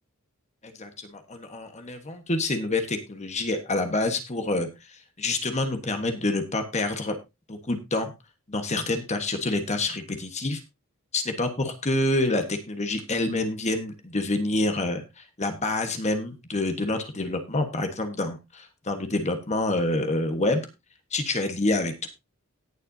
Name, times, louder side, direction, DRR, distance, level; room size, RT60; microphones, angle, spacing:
voice 1, 0.6-7.2 7.5-8.1 8.5-10.6 11.1-20.6 21.1-22.1, left 2 dB, 30° left, 6 dB, 1.3 m, -27 dB
18.0 x 7.5 x 2.7 m, 0.24 s
head